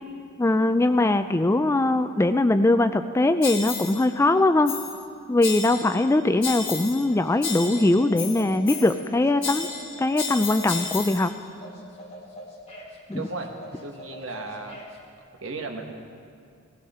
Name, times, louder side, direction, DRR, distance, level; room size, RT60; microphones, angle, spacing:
voice 1, 0.4-4.7 5.3-9.7 10.0-11.3 13.1-13.2, left 2 dB, 15° left, 10 dB, 0.3 m, -21 dB
sound 1, 3.4-4.1 4.7-5.0 5.4-6.1 6.4-7.1 7.4-9.1 9.4-11.3, left 6 dB, 65° left, 1.8 m, -33 dB
sound 2, 7.1-15.0, equal, 30° left, 2.1 m, -44 dB
voice 2, 13.1-14.8 15.4-15.9, right 3 dB, 75° right, 3 dB, 1.5 m, -35 dB
17.5 x 16.0 x 4.3 m, 2.3 s
head